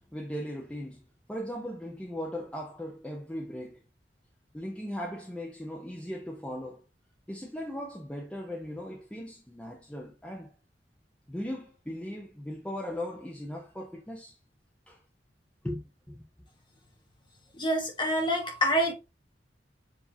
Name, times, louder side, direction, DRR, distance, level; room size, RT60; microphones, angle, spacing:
voice 1, 0.1-1.0 1.3-3.8 4.5-6.8 7.3-10.5 11.3-14.4 14.9-15.0 15.6-15.8 16.1-16.2, equal, 5° left, 0.7 m, -38 dB
voice 2, 17.5-18.9, equal, 25° left, 1.1 m, -26 dB
7.0 x 2.7 x 2.7 m
head